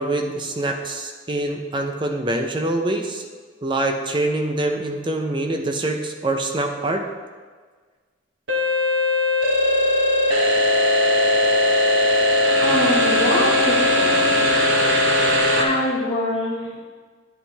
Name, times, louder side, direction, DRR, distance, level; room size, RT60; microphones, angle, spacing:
voice 1, 0.0-3.3 3.6-7.0, right 2 dB, 25° right, 4 dB, 0.7 m, -25 dB
sound 1, 8.5-15.6, left 1 dB, 80° right, 1.1 m, -18 dB
voice 2, 12.6-14.5 15.6-16.8, left 1 dB, 30° left, -5 dB, 2.0 m, -25 dB
9.2 x 8.3 x 3.4 m, 1.5 s
head